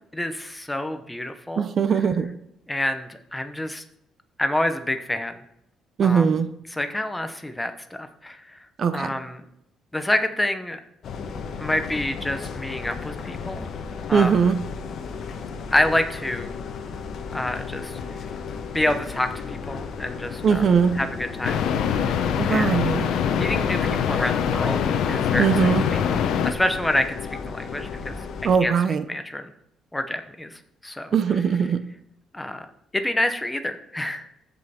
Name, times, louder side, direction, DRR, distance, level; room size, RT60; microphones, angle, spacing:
voice 1, 0.1-1.7 2.7-3.8 4.4-5.4 6.0-6.3 6.7-8.6 8.9-9.4 9.9-10.8 11.6-13.6 14.1-14.5 15.7-16.5 17.3-17.9 18.7-20.6 21.0-22.1 22.4-22.8 23.3-24.8 25.1-26.1 26.4-28.2 28.6-28.7 29.1-29.5 29.9-31.1 32.3-32.7 32.9-34.3, left 1 dB, 10° left, 8 dB, 0.8 m, -27 dB
voice 2, 1.6-2.3 6.0-6.5 8.8-9.1 14.1-14.6 20.4-21.0 22.4-23.1 25.4-25.8 28.4-29.0 31.1-31.8, right 6 dB, 40° right, 11 dB, 0.6 m, -20 dB
sound 1, 11.0-28.6, left 5 dB, 50° left, 1.1 m, -34 dB
sound 2, 21.4-26.5, left 8 dB, 70° left, 0.8 m, -24 dB
14.5 x 5.4 x 4.3 m, 0.79 s
cardioid pair, 150°, 0 cm